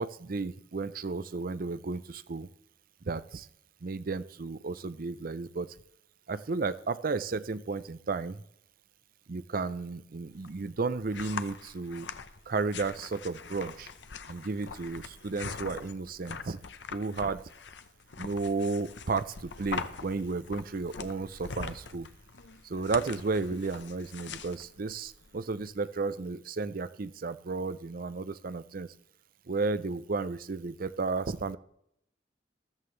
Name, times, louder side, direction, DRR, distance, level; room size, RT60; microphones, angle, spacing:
voice 1, 0.0-2.5 3.0-3.5 3.8-5.7 6.3-8.4 9.3-12.1 12.5-13.9 14.3-16.6 16.9-17.4 18.2-22.1 22.6-28.9 29.5-31.6, right 4 dB, 55° right, 15 dB, 0.6 m, -33 dB
sound 1, 10.3-25.7, left 5 dB, 75° left, 0.8 m, -43 dB
14.5 x 13.5 x 3.2 m, 0.75 s
head